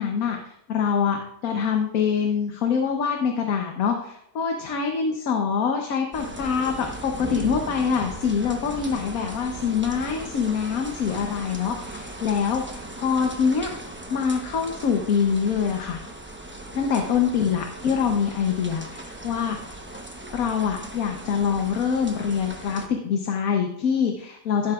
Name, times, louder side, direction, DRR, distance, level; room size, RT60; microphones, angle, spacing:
voice 1, 0.0-13.7 14.1-16.0 16.7-19.6 20.3-24.7, left 6 dB, 65° left, 3 dB, 1.3 m, -25 dB
sound 1, 6.1-22.9, right 1 dB, 10° right, 0.7 m, -38 dB
15.5 x 7.7 x 2.4 m, 0.76 s
omnidirectional pair, 1.7 m